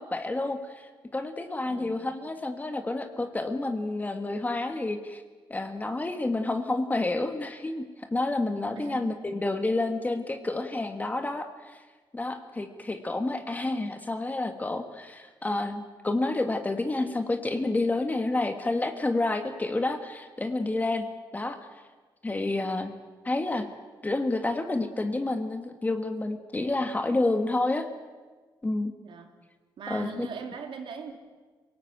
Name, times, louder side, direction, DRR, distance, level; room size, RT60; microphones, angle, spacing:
voice 1, 0.0-5.2 5.5-11.8 12.1-21.1 21.3-21.6 22.2-22.9 23.2-23.7 24.0-27.9 28.6-28.9 29.9-30.3, left 2 dB, 20° left, 6 dB, 1.6 m, -29 dB
voice 2, 8.7-9.2 29.0-29.3 29.8-31.2, right 6 dB, 75° right, 4 dB, 2.9 m, -40 dB
26.5 x 18.5 x 8.8 m, 1.4 s
wide cardioid pair, 130°, 9 cm